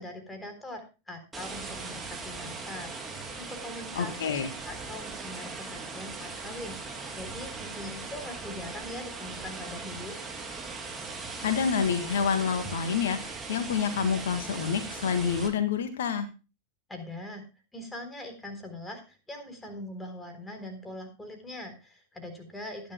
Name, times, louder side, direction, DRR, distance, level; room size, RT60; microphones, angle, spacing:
voice 1, 0.0-4.4 4.6-6.8 7.2-10.2 16.9-17.4 17.7-22.9, left 1 dB, 10° left, 5 dB, 3.7 m, -42 dB
sound 1, 1.3-15.5, right 4 dB, 10° right, 3.3 m, -39 dB
voice 2, 3.9-4.5 11.4-16.3, left 6 dB, 60° left, 9 dB, 1.6 m, -28 dB
20.5 x 10.5 x 2.2 m, 0.31 s
figure-of-eight pair, 90°, 0 cm